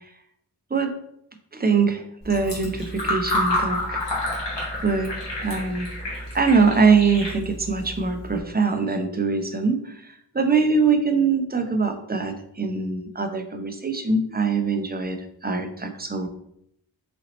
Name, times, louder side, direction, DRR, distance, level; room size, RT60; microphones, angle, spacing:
voice 1, 1.5-4.0 4.8-5.1 5.4-5.9 6.3-15.2 15.4-16.3, right 4 dB, 20° right, 6 dB, 0.7 m, -23 dB
Fill (with liquid), 2.2-8.4, left 1 dB, 80° left, 1.7 m, -29 dB
4.3 x 2.8 x 4.1 m, 0.74 s
cardioid pair, 40°, 42 cm